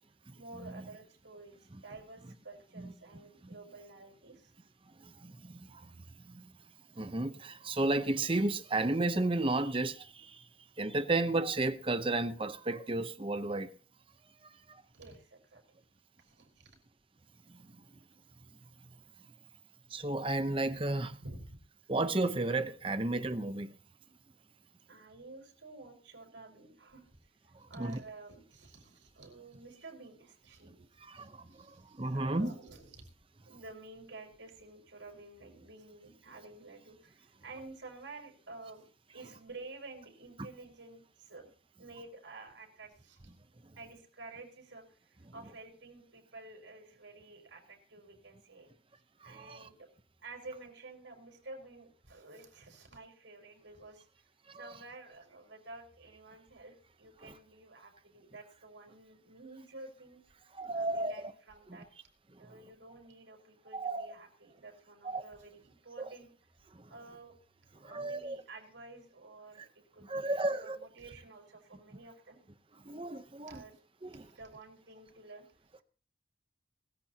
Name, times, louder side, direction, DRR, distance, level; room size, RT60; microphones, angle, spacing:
voice 1, 0.3-4.5 14.9-15.8 16.2-16.8 21.2-21.6 24.9-30.8 31.2-33.1 33.4-38.9 39.1-41.5 41.8-43.3 43.8-48.7 49.2-49.9 50.2-54.1 54.6-60.2 60.7-61.9 62.4-66.3 66.9-67.3 67.7-72.4 73.4-73.8 74.1-75.4, right 3 dB, 85° right, 5.0 m, -51 dB
voice 2, 5.2-5.9 6.2-6.5 7.0-10.4 10.8-13.7 14.7-14.8 17.5-17.6 19.9-21.2 21.9-23.7 27.8-28.0 31.1-31.7 31.9-32.5 49.4-49.6 54.5-54.6 57.2-57.3 60.6-61.1 63.7-64.1 65.0-65.2 66.0-66.1 67.8-68.4 70.1-70.8 72.9-73.6 74.0-74.2, right 2 dB, 30° right, 0.8 m, -33 dB
20.5 x 14.5 x 2.9 m
head